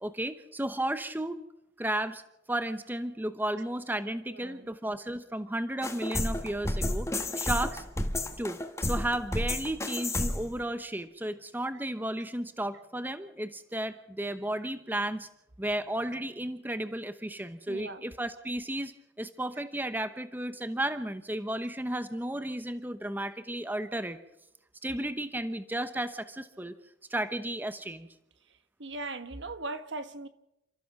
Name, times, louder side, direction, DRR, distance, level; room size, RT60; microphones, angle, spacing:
voice 1, 0.0-1.4 1.8-2.2 2.5-7.8 8.4-15.3 15.6-24.2 24.8-26.7 27.1-28.1, right 1 dB, 10° right, 0.9 m, -33 dB
voice 2, 4.3-4.7 17.7-18.0 28.8-30.3, right 2 dB, 80° right, 1.6 m, -39 dB
sound 1, 5.8-10.6, left 1 dB, 15° left, 1.5 m, -31 dB
30.0 x 14.5 x 6.1 m
head